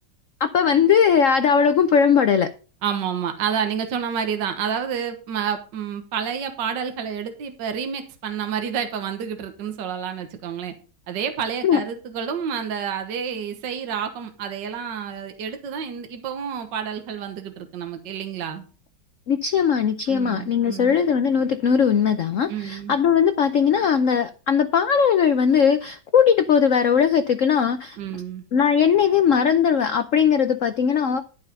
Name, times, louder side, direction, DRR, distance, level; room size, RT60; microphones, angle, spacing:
voice 1, 0.4-2.5 11.6-11.8 19.3-28.0 28.5-31.2, left 7 dB, 70° left, 9 dB, 0.7 m, -19 dB
voice 2, 2.8-10.7 11.1-18.6 20.1-21.0 22.5-23.0 28.0-28.4, right 7 dB, 65° right, 6 dB, 1.8 m, -29 dB
11.5 x 5.6 x 5.3 m, 0.37 s
omnidirectional pair, 2.1 m